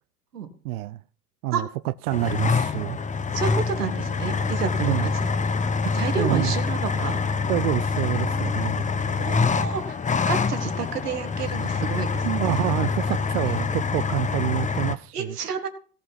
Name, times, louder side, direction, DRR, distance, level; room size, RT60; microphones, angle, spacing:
voice 1, 0.6-1.0 1.4-3.0 4.8-5.1 6.2-6.6 7.5-8.8 12.2-15.4, right 17 dB, 70° right, 0.6 m, -27 dB
sound 1, 2.1-15.0, left 4 dB, 15° left, 0.9 m, -25 dB
voice 2, 3.3-5.3 5.9-7.2 8.1-8.5 9.1-12.3 13.4-13.7 15.1-15.7, right 6 dB, 90° right, 2.0 m, -30 dB
17.0 x 5.8 x 5.8 m
hypercardioid pair, 80°, 45 cm